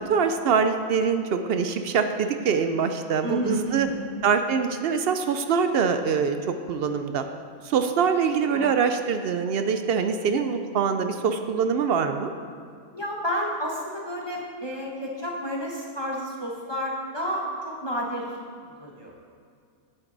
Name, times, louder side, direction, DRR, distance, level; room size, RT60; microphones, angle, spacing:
voice 1, 0.0-3.9 4.2-7.3 7.6-12.3, right 6 dB, 65° right, 8 dB, 0.6 m, -24 dB
voice 2, 3.2-4.1 8.5-8.7 12.9-18.3 18.8-19.1, equal, 20° left, -2 dB, 0.9 m, -31 dB
10.0 x 8.0 x 3.9 m, 2.2 s
omnidirectional pair, 1.5 m